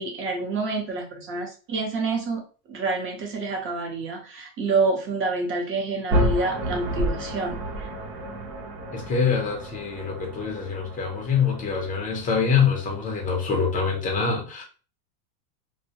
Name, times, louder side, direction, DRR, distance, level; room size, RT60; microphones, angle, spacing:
voice 1, 0.0-7.9, right 3 dB, 25° right, 0 dB, 0.7 m, -28 dB
sound 1, 6.1-14.1, right 1 dB, 65° right, 0.9 m, -31 dB
voice 2, 8.9-14.6, left 6 dB, 15° left, 0 dB, 0.6 m, -25 dB
2.2 x 2.1 x 2.7 m, 0.37 s
supercardioid pair, 125°, 50 cm